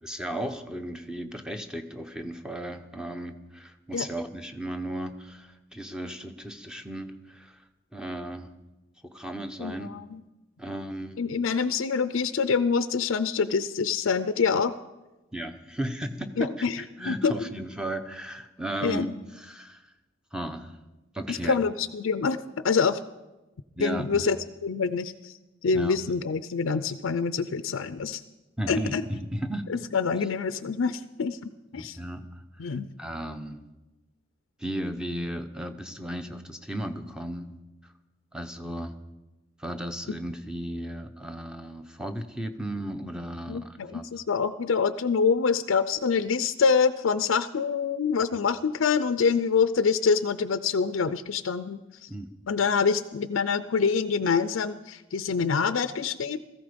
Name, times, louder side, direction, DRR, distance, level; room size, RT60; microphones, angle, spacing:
voice 1, 0.0-7.6 7.9-8.5 9.0-10.0 10.6-11.2 15.3-19.1 19.3-19.9 20.3-20.8 21.1-21.6 23.8-24.3 25.7-26.0 28.6-29.7 30.2-30.3 31.7-33.6 34.6-37.5 37.8-37.9 38.3-38.9 39.6-44.1 52.1-52.3, right 1 dB, 5° right, 7 dB, 0.8 m, -35 dB
voice 2, 9.6-10.2 11.2-14.7 16.4-16.8 17.1-17.3 18.8-19.1 21.3-23.0 23.8-24.4 24.6-25.4 25.6-28.2 28.7-29.0 29.7-31.4 31.7-32.0 32.6-32.9 40.1-40.2 43.5-52.1 52.5-56.4, left 5 dB, 75° left, 12 dB, 0.5 m, -26 dB
17.0 x 14.5 x 5.2 m, 1.1 s
head